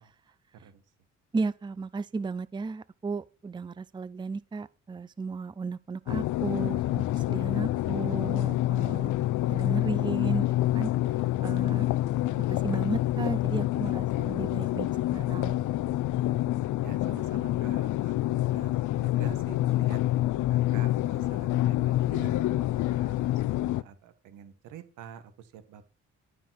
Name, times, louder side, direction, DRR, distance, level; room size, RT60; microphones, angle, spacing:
voice 1, 1.3-9.1 9.5-10.9 11.4-11.9 12.4-15.6, right 4 dB, 15° right, 0.5 m, -34 dB
sound 1, 6.1-23.8, left 15 dB, 80° left, 0.6 m, -27 dB
voice 2, 16.8-20.0 20.5-25.8, right 8 dB, 90° right, 1.9 m, -47 dB
11.5 x 5.5 x 6.1 m
cardioid pair, 90°, 30 cm